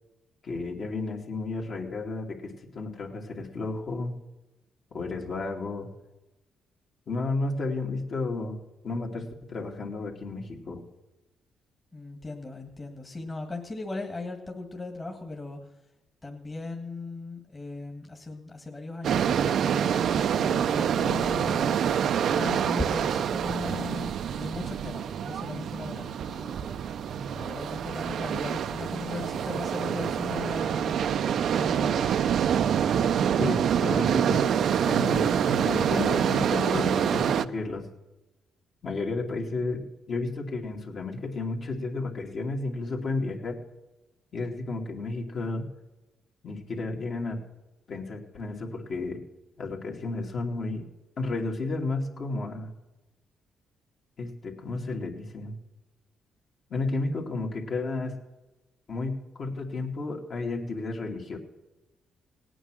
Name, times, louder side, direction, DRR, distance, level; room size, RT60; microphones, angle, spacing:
voice 1, 0.4-4.1 4.9-5.9 7.1-8.6 8.8-10.8 33.4-34.4 34.8-37.9 38.8-43.6 44.3-45.7 46.4-47.4 47.9-49.2 49.6-50.8 51.2-52.7 54.2-55.5 56.7-58.1 58.9-61.4, left 3 dB, 55° left, 0 dB, 2.6 m, -32 dB
voice 2, 11.9-15.8 16.2-21.9 22.3-26.8 27.3-31.0 31.5-32.2, left 3 dB, 25° left, 2 dB, 1.8 m, -38 dB
sound 1, 19.0-37.5, right 8 dB, 65° right, 0.5 m, -26 dB
18.0 x 9.1 x 6.3 m, 1.0 s
cardioid pair, 90°, 0 cm